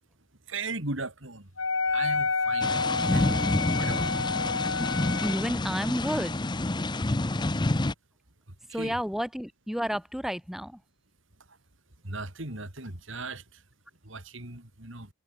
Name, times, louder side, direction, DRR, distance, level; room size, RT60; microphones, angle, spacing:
voice 1, 0.5-1.5 1.9-2.8 3.1-3.4 3.7-4.1 8.8-8.9 12.0-13.4 14.0-15.1, right 3 dB, 65° right, 3.9 m, -37 dB
Wind instrument woodwind instrument, 1.6-5.5, left 4 dB, 70° left, 4.0 m, -29 dB
sound 1, 2.6-7.9, left 2 dB, 20° left, 0.7 m, -28 dB
voice 2, 5.2-6.4 8.7-10.8, equal, ahead, 1.4 m, -31 dB
head